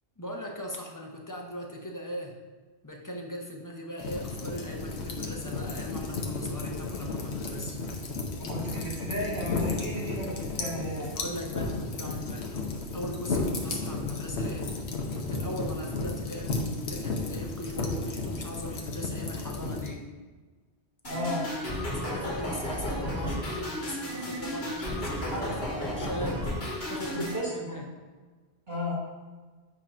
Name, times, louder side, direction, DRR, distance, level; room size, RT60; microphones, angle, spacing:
voice 1, 0.2-2.4 2.8-7.8 11.1-14.7 15.3-20.1 21.8-27.3 27.5-27.9, equal, 20° left, 0 dB, 0.7 m, -39 dB
sound 1, 4.0-19.9, left 3 dB, 90° left, 1.1 m, -33 dB
voice 2, 8.5-11.1 21.0-21.5 25.3-25.5 27.1-27.8 28.7-29.0, left 1 dB, 55° right, -9 dB, 2.3 m, -33 dB
sound 2, 21.0-27.4, equal, 70° left, 1.9 m, -33 dB
8.3 x 2.9 x 4.9 m, 1.4 s
omnidirectional pair, 1.1 m